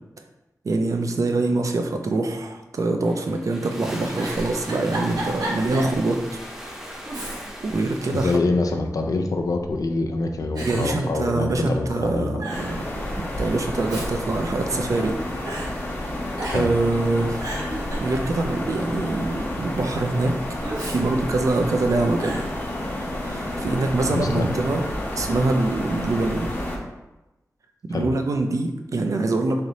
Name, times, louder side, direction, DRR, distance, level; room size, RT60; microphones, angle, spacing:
voice 1, 0.6-6.2 7.6-8.3 10.6-15.2 16.5-17.6 18.0-20.3 20.8-22.4 23.0-24.8 25.1-26.5 27.9-29.6, right 2 dB, 60° right, 4 dB, 0.4 m, -24 dB
sound 1, 3.0-8.4, equal, 5° right, 0.7 m, -38 dB
Giggle, 4.1-6.0 6.4-6.5 7.0-7.7 8.1-8.9 9.6-10.0 10.6-11.8 12.1-12.2 12.4-12.8 13.6-15.1 15.5-15.7 16.4-16.8 17.2-18.6 20.6-21.8 22.2-22.5, right 1 dB, 90° right, 0.9 m, -33 dB
voice 2, 8.1-12.4 16.5-16.7 24.1-24.4 27.9-28.1, left 3 dB, 70° left, 4 dB, 0.4 m, -25 dB
sound 2, 12.5-26.8, left 1 dB, 30° left, 0.7 m, -30 dB
3.2 x 2.6 x 3.9 m, 1.0 s
wide cardioid pair, 110°, 6 cm